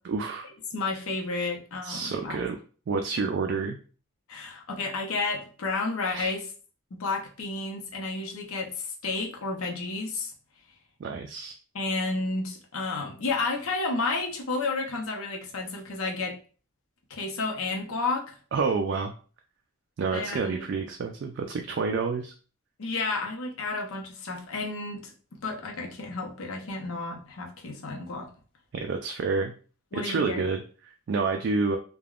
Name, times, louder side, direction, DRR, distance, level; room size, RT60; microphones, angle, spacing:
voice 1, 0.0-0.5 1.8-2.6 2.9-3.8 6.1-6.3 11.0-11.5 18.5-19.1 20.0-22.3 28.7-29.5 29.9-31.8, right 4 dB, 60° right, 3 dB, 0.3 m, -29 dB
voice 2, 0.7-2.4 4.3-6.4 7.0-10.3 11.7-16.4 17.1-18.4 20.1-20.7 22.8-25.1 25.4-28.3 29.9-30.4, left 3 dB, 85° left, 1 dB, 0.7 m, -31 dB
3.4 x 2.2 x 2.4 m, 0.39 s
head